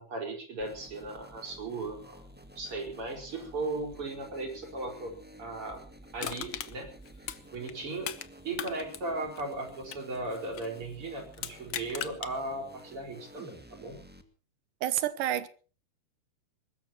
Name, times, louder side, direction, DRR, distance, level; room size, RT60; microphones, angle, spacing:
voice 1, 0.0-2.3 2.6-5.1 5.4-5.8 6.1-6.9 7.5-8.1 8.4-14.0, right 2 dB, 40° right, 5.6 m, -37 dB
sound 1, 0.6-14.2, equal, 15° right, 0.4 m, -52 dB
Crushing, 6.2-8.3 8.5-10.8 11.3-12.3 12.8-12.9, left 10 dB, 85° left, 1.1 m, -39 dB
voice 2, 14.8-15.5, right 12 dB, 75° right, 2.6 m, -29 dB
22.5 x 20.5 x 3.0 m
omnidirectional pair, 4.0 m